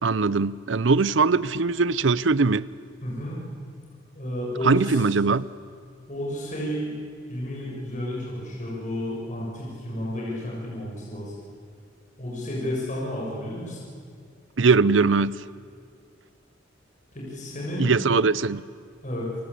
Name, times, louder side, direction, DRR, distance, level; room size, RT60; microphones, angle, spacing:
voice 1, 0.0-2.7 4.6-5.5 14.6-15.5 17.8-18.6, right 4 dB, 70° right, 0.7 m, -21 dB
voice 2, 3.0-3.4 4.2-5.0 6.1-6.9 7.3-11.3 12.2-13.8 17.1-17.9 19.0-19.3, left 1 dB, 40° left, 7.1 m, -31 dB
29.5 x 23.5 x 8.5 m
head